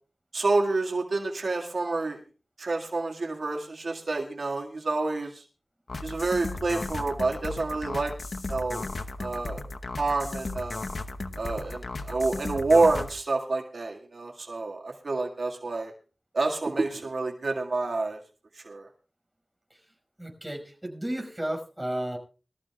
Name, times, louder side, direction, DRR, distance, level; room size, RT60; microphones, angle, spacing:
voice 1, 0.3-2.2 2.6-5.4 6.0-8.1 8.5-8.9 9.2-9.6 10.0-10.8 11.4-15.9 16.3-18.2 18.7-18.9, right 3 dB, 75° right, 1 dB, 1.9 m, -28 dB
sound 1, 5.9-13.1, left 2 dB, 60° left, 1.0 m, -35 dB
voice 2, 20.2-22.2, right 1 dB, 10° right, 2 dB, 5.5 m, -33 dB
23.0 x 14.0 x 2.4 m, 0.36 s
wide cardioid pair, 80°, 0 cm